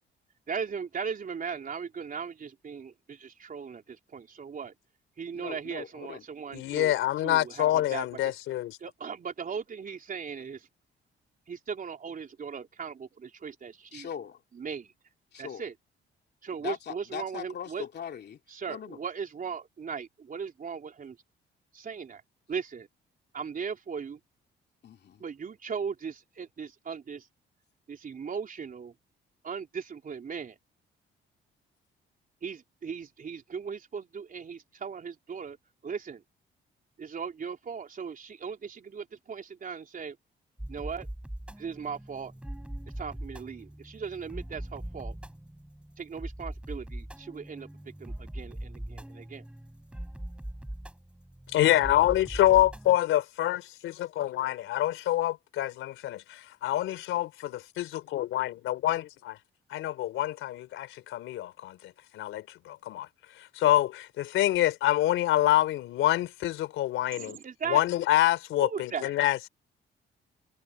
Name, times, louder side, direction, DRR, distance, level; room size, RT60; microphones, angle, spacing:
voice 1, 0.5-4.7 5.2-6.9 7.2-8.4 8.8-10.7 11.5-14.1 14.5-14.9 15.4-15.7 16.4-17.9 18.5-21.2 21.7-22.2 22.5-22.9 23.3-24.2 25.2-27.3 27.9-28.9 29.4-30.6 32.4-35.6 35.8-36.2 37.0-40.2 40.7-41.1 41.6-42.4 43.0-45.2 46.0-49.5 67.1-67.8 68.6-69.1, right 6 dB, 45° right, 3.8 m, -38 dB
voice 2, 5.3-6.2 13.9-14.4 15.3-15.6 16.6-18.4 18.7-19.0 24.8-25.2, left 8 dB, 55° left, 2.8 m, -40 dB
voice 3, 6.5-8.8 51.5-59.4 59.7-61.8 62.1-63.1 63.4-67.4 67.7-69.5, left 14 dB, 85° left, 3.6 m, -26 dB
sound 1, 40.6-53.0, right 1 dB, 5° right, 7.7 m, -41 dB
cardioid pair, 90°, 20 cm